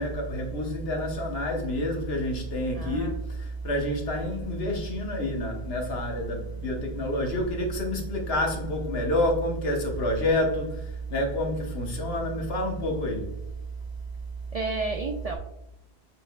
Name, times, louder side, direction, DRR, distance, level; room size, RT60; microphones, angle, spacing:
voice 1, 0.0-13.3, left 1 dB, 70° left, 1.2 m, -28 dB
voice 2, 2.7-3.2 14.5-15.4, right 3 dB, 55° right, 0.4 m, -31 dB
6.5 x 3.7 x 2.2 m
omnidirectional pair, 1.1 m